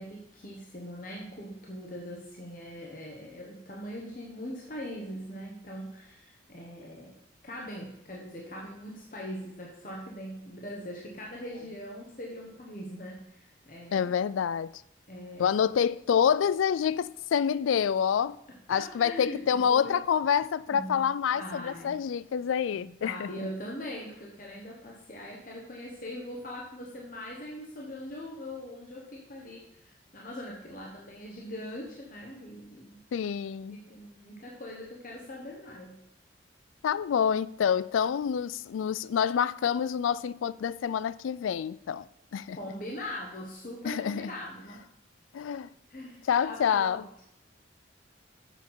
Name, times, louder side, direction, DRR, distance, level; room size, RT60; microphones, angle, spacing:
voice 1, 0.0-7.1 7.4-14.1 15.1-15.6 18.7-19.9 20.7-21.0 21.3-22.0 22.7-33.0 33.7-36.0 42.5-44.8 45.9-47.2, equal, 45° left, 1.1 m, -41 dB
voice 2, 13.9-14.7 15.4-18.4 18.7-23.3 33.1-33.8 36.8-42.1 42.3-42.6 43.9-44.3 45.3-45.7 46.3-47.1, left 7 dB, 85° left, 0.3 m, -27 dB
7.4 x 5.8 x 5.6 m
head